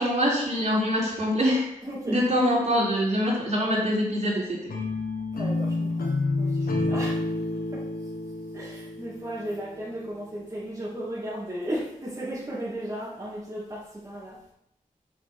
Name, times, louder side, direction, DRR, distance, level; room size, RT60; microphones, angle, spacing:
voice 1, 0.0-1.7 2.1-4.7, equal, 50° right, -5 dB, 3.7 m, -24 dB
voice 2, 1.8-2.2 5.3-6.1 6.4-7.2 7.7-7.8 8.5-14.4, right 1 dB, 25° right, -8 dB, 2.5 m, -35 dB
sound 1, 4.7-9.8, left 2 dB, 85° left, 1.3 m, -29 dB
6.3 x 5.9 x 6.1 m, 0.78 s
wide cardioid pair, 105°, 14 cm